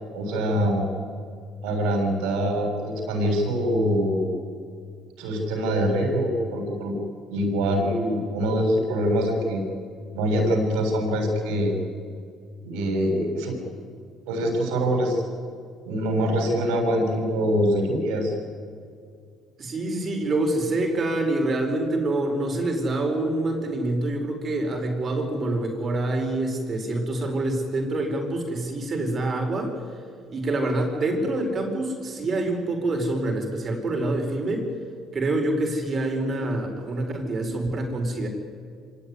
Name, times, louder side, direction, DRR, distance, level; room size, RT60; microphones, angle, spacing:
voice 1, 0.1-0.9 1.6-4.3 5.2-7.0 7.3-9.6 10.1-11.7 12.6-13.6 14.3-15.2 15.9-18.3, equal, 90° right, 2 dB, 6.9 m, -24 dB
voice 2, 19.6-29.7 30.3-34.7 35.1-38.3, right 2 dB, 40° right, 3 dB, 4.8 m, -26 dB
25.0 x 18.0 x 9.8 m, 2.2 s
supercardioid pair, 85°, 0 cm